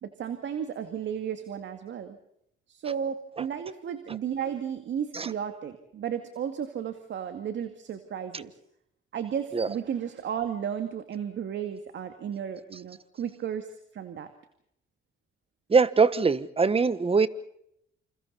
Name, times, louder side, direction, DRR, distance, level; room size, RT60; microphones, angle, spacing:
voice 1, 0.0-2.2 2.7-8.5 9.1-14.3, right 8 dB, 65° right, 2.2 m, -34 dB
voice 2, 15.7-17.3, right 4 dB, 30° right, 1.3 m, -22 dB
28.5 x 27.5 x 4.2 m
cardioid pair, 90°, 20 cm